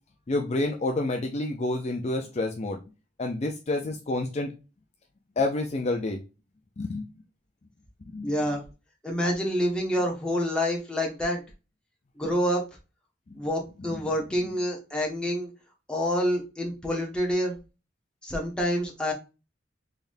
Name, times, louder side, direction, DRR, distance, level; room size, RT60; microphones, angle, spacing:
voice 1, 0.3-2.8 3.2-4.5 5.4-6.2 6.8-7.1 8.1-8.3 13.3-13.4 14.4-14.5, left 2 dB, 35° left, 2 dB, 0.5 m, -29 dB
voice 2, 8.2-8.6 9.0-11.4 12.2-12.6 13.3-15.5 15.9-17.6 18.2-19.1, equal, 5° left, -2 dB, 1.0 m, -27 dB
3.9 x 3.4 x 2.6 m, 0.29 s
head